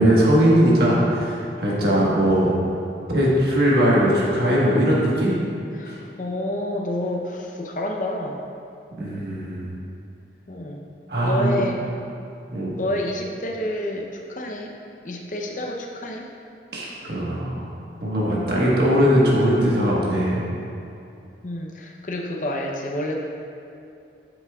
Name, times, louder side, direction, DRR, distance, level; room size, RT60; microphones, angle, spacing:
voice 1, 0.0-2.5 3.1-5.3 5.9-6.0 9.0-9.7 11.1-11.6 12.5-12.7 16.7-17.6 18.0-20.4, equal, 65° right, -6 dB, 1.4 m, -20 dB
voice 2, 5.7-8.4 10.5-10.8 11.2-11.8 12.8-14.8 15.0-16.3 21.4-23.1, left 1 dB, 45° left, 1 dB, 0.7 m, -29 dB
8.8 x 7.1 x 2.4 m, 2.6 s
head